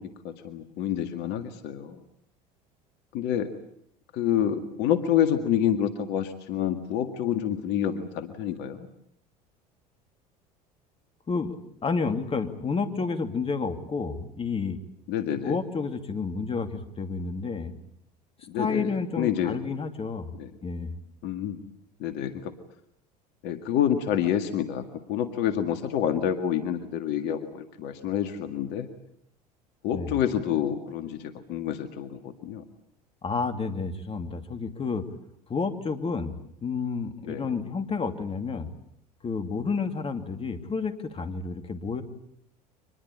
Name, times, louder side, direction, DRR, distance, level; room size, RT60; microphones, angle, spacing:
voice 1, 0.0-2.0 3.1-3.5 4.1-8.9 15.1-15.6 18.5-18.9 19.2-19.6 20.4-20.5 21.2-21.6 22.0-22.5 23.4-24.8 25.1-28.9 29.8-32.6 37.2-37.5, left 9 dB, 60° left, 8 dB, 2.0 m, -28 dB
voice 2, 11.3-14.8 15.4-17.7 18.5-20.3 20.6-20.9 29.9-30.2 33.2-35.0 35.5-36.3 36.6-38.7 39.2-42.0, left 4 dB, 30° left, 7 dB, 2.7 m, -30 dB
25.0 x 21.0 x 8.7 m, 0.71 s
hypercardioid pair, 75°, 20 cm